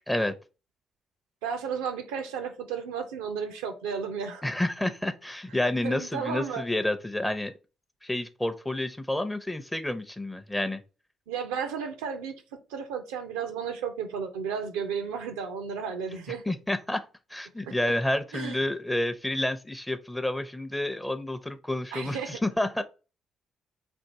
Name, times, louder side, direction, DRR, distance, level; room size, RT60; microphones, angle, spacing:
voice 1, 1.4-4.4 5.8-6.7 11.3-12.4 12.7-16.4 17.6-17.7 18.3-18.6 21.9-22.4, right 6 dB, 80° right, 0.5 m, -33 dB
voice 2, 4.4-7.5 8.0-10.8 16.5-17.0 17.3-22.8, left 1 dB, 10° left, 0.6 m, -29 dB
3.5 x 2.6 x 4.0 m
hypercardioid pair, 45°, 0 cm